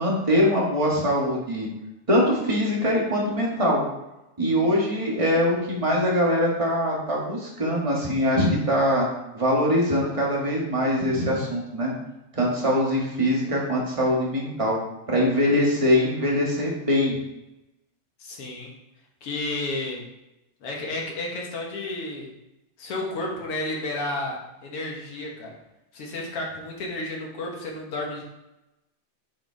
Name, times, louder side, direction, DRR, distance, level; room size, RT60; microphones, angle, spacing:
voice 1, 0.0-1.7 2.1-3.8 4.4-9.1 9.3-11.9 12.3-14.8 15.1-17.1, equal, 25° right, -3 dB, 0.6 m, -22 dB
voice 2, 18.2-18.7 19.2-20.0 20.6-22.3 22.8-25.5 25.9-28.2, left 2 dB, 55° left, -1 dB, 2.2 m, -32 dB
7.7 x 5.3 x 4.6 m, 0.95 s
omnidirectional pair, 3.3 m